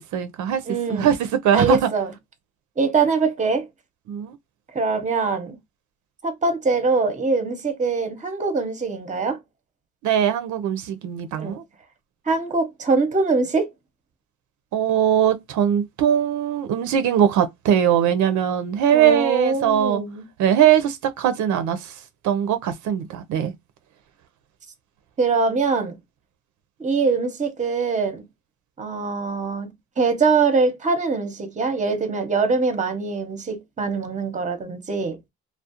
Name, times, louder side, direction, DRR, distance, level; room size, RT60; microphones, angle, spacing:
voice 1, 0.1-0.6 0.9-1.8 4.1-4.4 10.0-11.6 14.7-20.0 20.4-21.9 22.2-23.5, right 9 dB, 75° right, 0.5 m, -21 dB
voice 2, 0.7-1.1 1.5-2.1 2.8-3.7 4.7-5.6 6.2-9.4 11.3-11.6 12.3-13.7 18.9-20.3 25.2-26.0 26.8-28.2 28.8-35.2, right 4 dB, 25° right, 0.7 m, -23 dB
2.4 x 2.0 x 2.7 m
cardioid pair, 90°, 30 cm